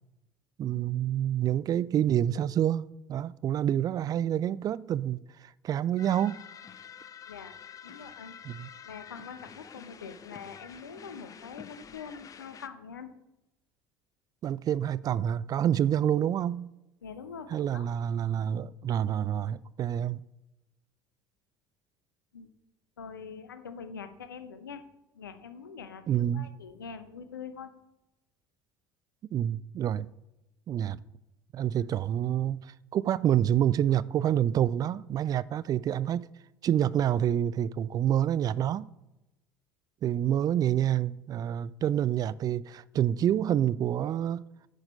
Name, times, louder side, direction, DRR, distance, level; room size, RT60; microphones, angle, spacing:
voice 1, 0.6-6.5 8.5-8.7 14.4-16.7 17.5-20.2 26.1-26.5 29.3-30.1 30.7-31.0 31.5-36.3 36.6-38.9 40.0-44.4, right 10 dB, 35° right, 0.4 m, -27 dB
sound 1, 6.0-12.7, left 7 dB, 30° left, 0.6 m, -48 dB
voice 2, 7.8-8.4 8.8-13.1 17.0-17.9 22.3-22.5 23.0-24.8 25.1-27.7, left 6 dB, 80° left, 0.8 m, -44 dB
10.0 x 6.4 x 5.3 m
figure-of-eight pair, 60°, 11 cm